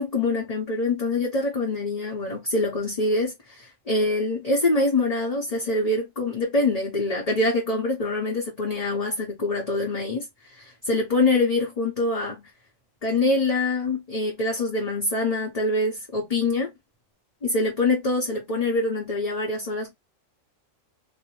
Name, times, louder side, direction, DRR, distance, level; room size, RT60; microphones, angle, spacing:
voice 1, 0.0-12.4 13.0-16.7 17.4-19.9, left 2 dB, 35° left, 0.7 m, -25 dB
2.6 x 2.0 x 3.0 m
omnidirectional pair, 1.3 m